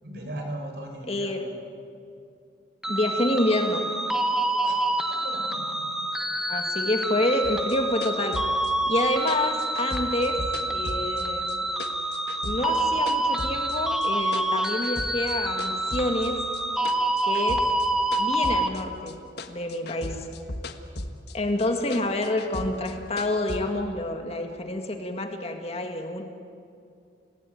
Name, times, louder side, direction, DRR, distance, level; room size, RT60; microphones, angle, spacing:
voice 1, 0.0-1.5 4.6-5.8 7.2-7.3, right 1 dB, 65° right, 2 dB, 5.4 m, -38 dB
voice 2, 1.1-1.4 2.9-3.9 6.5-8.4 8.9-10.4 10.7-11.7 12.4-16.4 17.2-17.6 18.2-19.2 19.5-20.3 21.3-26.2, left 1 dB, 35° left, 4 dB, 1.9 m, -27 dB
sound 1, 2.8-18.7, right 1 dB, 5° right, 1.2 m, -27 dB
sound 2, 7.4-11.5 11.8-13.8 14.0-15.3 15.6-19.1 19.4-21.3 21.6-23.6, left 2 dB, 65° left, 1.6 m, -37 dB
28.5 x 17.5 x 9.4 m, 2.5 s
head